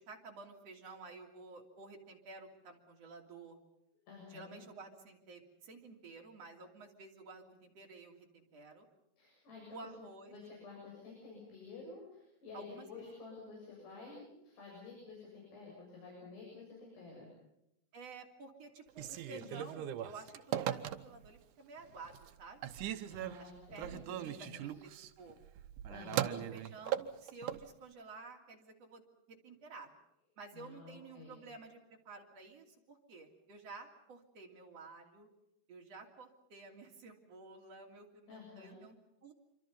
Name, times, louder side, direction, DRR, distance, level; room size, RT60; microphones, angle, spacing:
voice 1, 0.0-3.6 4.3-8.9 9.7-10.3 12.5-13.1 17.9-22.8 23.4-25.4 26.3-29.9 30.4-35.3 35.7-39.0 39.2-39.3, right 3 dB, 40° right, 1 dB, 3.6 m, -52 dB
voice 2, 4.1-4.6 9.2-9.9 10.3-17.3 19.3-19.6 23.1-24.6 25.9-26.4 30.5-31.4 38.3-38.8, left 4 dB, 65° left, -3 dB, 9.3 m, -51 dB
Telephone, 18.9-21.4 21.8-22.3 22.6-27.7, right 11 dB, 85° right, 1.7 m, -39 dB
27.0 x 25.5 x 5.5 m, 0.86 s
omnidirectional pair, 5.1 m